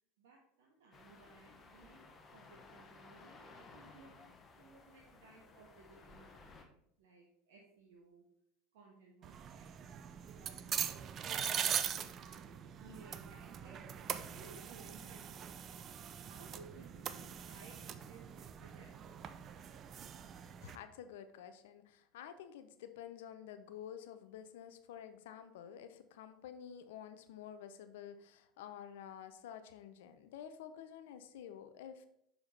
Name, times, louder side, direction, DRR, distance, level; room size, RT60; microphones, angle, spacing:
voice 1, 0.2-8.2 8.7-9.9 10.3-10.9 11.2-15.8 16.3-19.0, right 3 dB, 70° right, -2 dB, 1.3 m, -60 dB
sound 1, 0.9-6.7, left 3 dB, 30° left, 1.2 m, -58 dB
sound 2, 9.2-20.8, right 8 dB, 40° right, 0.5 m, -42 dB
voice 2, 20.6-32.1, left 9 dB, 70° left, 10 dB, 0.6 m, -50 dB
6.8 x 5.6 x 4.2 m, 0.75 s
figure-of-eight pair, 75°, 0 cm